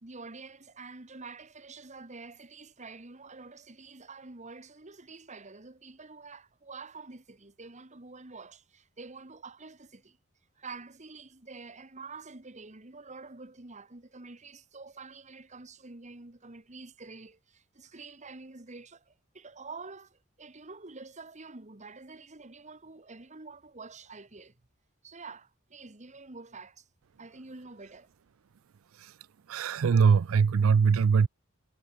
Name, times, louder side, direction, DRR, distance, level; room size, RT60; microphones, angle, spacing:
voice 1, 0.0-10.2 10.6-24.6 25.0-26.8 27.2-28.1, right 3 dB, 35° right, 1.7 m, -47 dB
voice 2, 29.5-31.3, right 6 dB, 80° right, 0.4 m, -22 dB
head